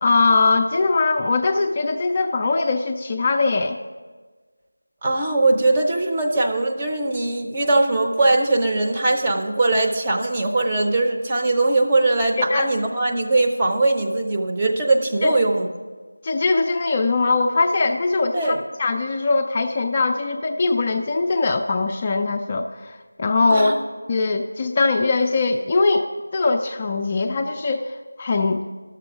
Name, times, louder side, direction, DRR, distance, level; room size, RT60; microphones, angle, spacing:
voice 1, 0.0-3.8 12.4-12.7 15.2-15.4 16.2-23.7 24.1-26.1 26.3-28.6, left 3 dB, 25° left, 4 dB, 0.3 m, -21 dB
voice 2, 5.0-15.7 18.3-18.6 23.5-23.7, right 2 dB, 20° right, 1 dB, 0.6 m, -20 dB
11.5 x 6.8 x 4.9 m, 1.5 s
figure-of-eight pair, 170°, 0 cm